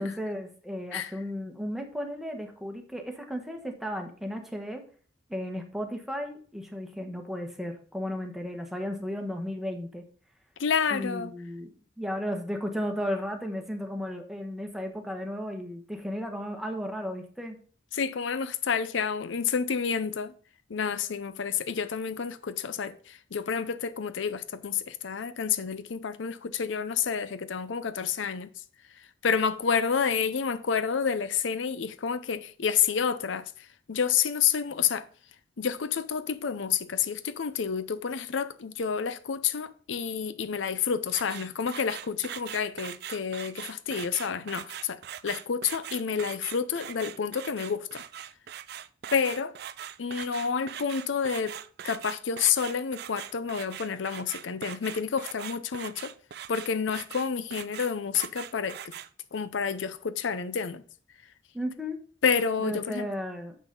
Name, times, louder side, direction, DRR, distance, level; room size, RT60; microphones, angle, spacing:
voice 1, 0.0-4.8 5.3-10.0 10.9-17.6 61.5-62.0 62.6-63.6, equal, ahead, 1.2 m, -34 dB
voice 2, 10.6-11.3 17.9-20.3 20.7-28.6 28.9-35.1 35.6-48.0 49.1-49.5 50.0-51.6 51.8-56.1 56.5-58.9 59.3-60.8 62.2-63.1, left 6 dB, 75° left, 0.6 m, -29 dB
sound 1, 41.1-59.1, right 10 dB, 55° right, 0.4 m, -41 dB
7.4 x 6.0 x 5.3 m
head